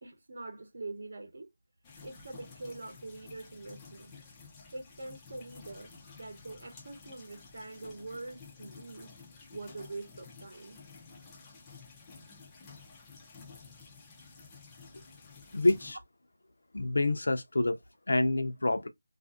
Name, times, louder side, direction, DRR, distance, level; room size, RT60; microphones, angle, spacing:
voice 1, 0.0-1.5 2.0-4.1 4.7-9.2 9.5-10.8, right 2 dB, 50° right, 0.8 m, -44 dB
sound 1, 1.8-15.9, left 4 dB, 10° left, 0.4 m, -52 dB
voice 2, 15.5-16.0 16.7-17.8 18.1-18.9, left 2 dB, 70° left, 0.6 m, -27 dB
2.5 x 2.5 x 2.4 m
figure-of-eight pair, 175°, 0 cm